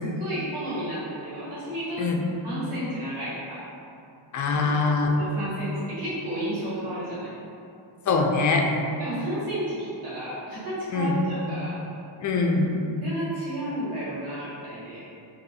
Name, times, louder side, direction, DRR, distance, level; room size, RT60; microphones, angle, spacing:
voice 1, 0.0-2.0 2.4-3.6 4.5-7.3 9.0-11.8 13.0-15.0, right 1 dB, 90° right, -11 dB, 1.5 m, -32 dB
voice 2, 4.3-5.1 8.1-8.7 10.9-11.2 12.2-12.7, left 4 dB, 40° left, 2 dB, 0.4 m, -23 dB
2.6 x 2.6 x 4.0 m, 2.6 s
cardioid pair, 70°, 49 cm